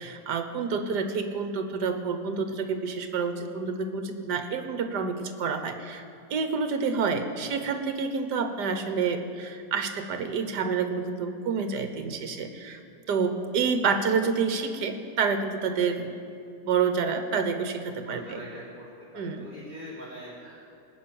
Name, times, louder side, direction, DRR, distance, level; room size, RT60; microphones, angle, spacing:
voice 1, 0.0-6.0 6.3-12.8 13.1-16.1 16.6-18.4 19.1-19.4, right 5 dB, 65° right, 8 dB, 1.6 m, -28 dB
voice 2, 17.9-18.9 19.1-20.6, equal, 20° left, -14 dB, 4.9 m, -43 dB
19.0 x 6.4 x 8.8 m, 2.5 s
omnidirectional pair, 2.0 m